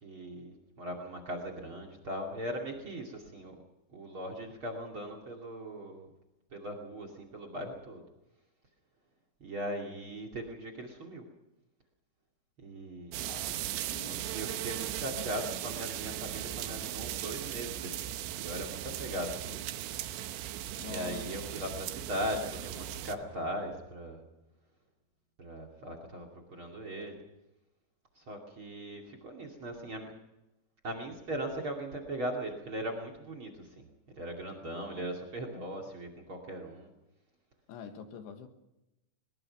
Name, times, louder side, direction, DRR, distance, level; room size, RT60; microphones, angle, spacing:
voice 1, 0.0-3.5 3.9-6.1 6.5-8.0 9.4-11.2 12.6-13.2 14.0-19.6 20.8-24.2 25.4-27.2 28.2-30.1 30.8-33.9 34.2-36.9, equal, 35° right, 6 dB, 2.7 m, -39 dB
sound 1, 13.1-23.2, right 13 dB, 90° right, 3.4 m, -38 dB
voice 2, 13.3-14.7 19.5-19.6 20.8-21.3 37.7-38.5, left 7 dB, 70° left, 7 dB, 3.5 m, -46 dB
sound 2, 20.4-24.6, equal, 85° left, 7.3 m, -57 dB
22.0 x 21.5 x 5.9 m, 0.95 s
omnidirectional pair, 5.2 m